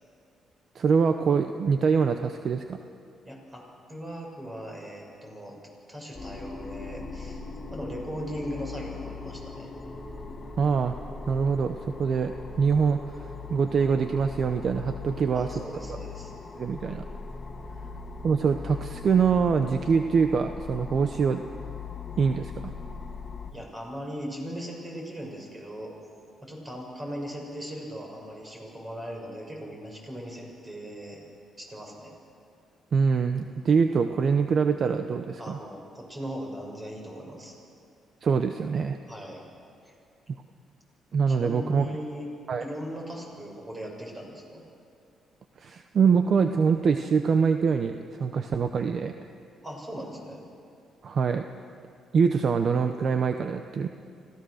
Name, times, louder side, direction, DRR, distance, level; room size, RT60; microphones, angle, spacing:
voice 1, 0.7-2.8 10.6-11.0 11.3-15.5 16.5-17.0 18.2-21.4 22.2-22.7 32.9-35.6 38.2-39.0 41.1-41.9 42.5-42.6 45.6-49.1 51.0-51.5 52.1-53.9, right 5 dB, 50° right, 7 dB, 0.8 m, -24 dB
voice 2, 3.2-3.6 3.9-5.6 5.9-7.4 7.7-9.7 15.3-16.3 23.5-25.9 26.4-31.2 31.6-32.1 35.4-37.5 39.1-39.4 39.8-39.9 41.3-42.3 42.6-44.6 49.6-50.4, equal, 25° right, 0 dB, 6.1 m, -38 dB
sound 1, 6.1-23.5, left 4 dB, 30° left, 1.9 m, -40 dB
25.5 x 16.0 x 6.4 m, 2.5 s
cardioid pair, 90°, 0 cm